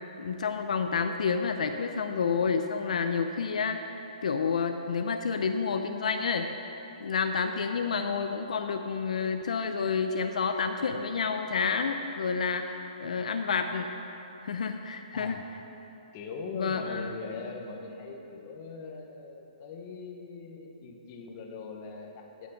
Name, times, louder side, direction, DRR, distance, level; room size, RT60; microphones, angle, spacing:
voice 1, 0.2-3.8 4.2-6.5 7.0-13.9 14.4-15.4 16.5-17.1, left 5 dB, 70° left, 6 dB, 0.6 m, -29 dB
voice 2, 15.1-15.5 16.1-22.5, left 4 dB, 25° left, 2 dB, 1.0 m, -41 dB
8.5 x 8.4 x 6.1 m, 3.0 s
hypercardioid pair, 165°, 4 cm